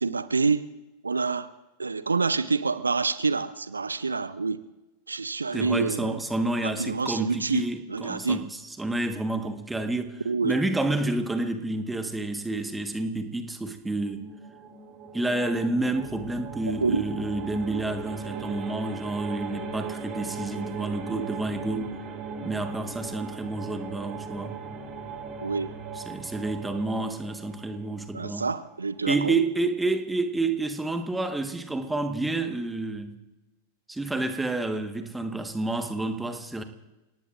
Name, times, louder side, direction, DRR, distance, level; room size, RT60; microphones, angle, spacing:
voice 1, 0.0-0.6 1.0-1.5 1.8-4.6 5.1-6.1 6.6-8.4 10.3-10.6 16.8-17.0 25.4-25.7 28.1-29.4, right 4 dB, 75° right, 15 dB, 0.5 m, -27 dB
voice 2, 5.5-14.3 15.1-21.9 22.4-24.5 25.9-28.5 29.1-33.2 33.9-36.6, right 2 dB, 5° right, 7 dB, 1.5 m, -29 dB
sound 1, 13.9-28.6, right 4 dB, 30° right, 2.4 m, -38 dB
30.0 x 18.0 x 2.6 m, 1.1 s
figure-of-eight pair, 90°, 0 cm